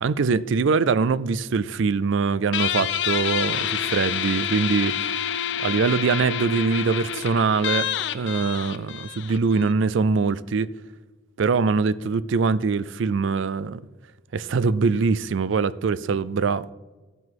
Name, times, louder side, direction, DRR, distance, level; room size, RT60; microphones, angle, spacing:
voice 1, 0.0-5.1 5.6-10.7 11.4-13.8 14.3-16.7, right 4 dB, 70° right, 0.4 m, -23 dB
Guitar, 2.5-9.7, left 9 dB, 60° left, 0.5 m, -28 dB
11.5 x 7.8 x 4.7 m
head